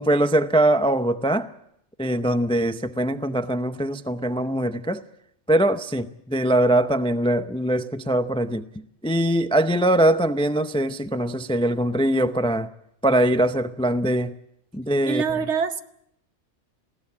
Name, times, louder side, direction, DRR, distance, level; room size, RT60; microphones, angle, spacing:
voice 1, 0.0-1.5 2.0-5.0 5.5-8.6 9.0-12.7 13.0-14.3 14.7-15.2, right 1 dB, 10° left, 11 dB, 0.4 m, -22 dB
voice 2, 15.0-15.8, right 6 dB, 65° right, 10 dB, 1.2 m, -24 dB
20.0 x 16.5 x 8.5 m, 0.75 s
omnidirectional pair, 1.3 m